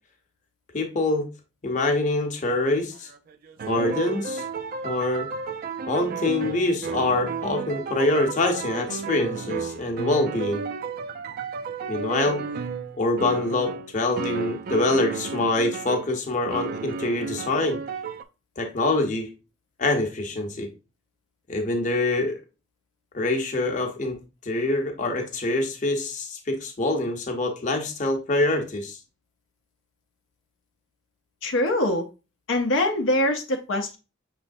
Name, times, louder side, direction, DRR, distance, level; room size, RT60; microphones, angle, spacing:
voice 1, 0.7-1.3 1.6-3.1 3.7-4.5 4.8-5.3 5.9-10.6 11.9-12.4 13.0-17.8 18.6-19.3 19.8-20.7 21.5-22.3 23.1-24.2 24.4-29.0, left 2 dB, 40° left, 3 dB, 0.8 m, -25 dB
sound 1, 3.0-16.1 16.5-18.2, right 5 dB, 50° right, 0.3 m, -33 dB
voice 2, 31.4-32.1 32.5-34.0, left 1 dB, 70° left, 4 dB, 0.5 m, -23 dB
6.0 x 3.2 x 2.5 m, 0.30 s
head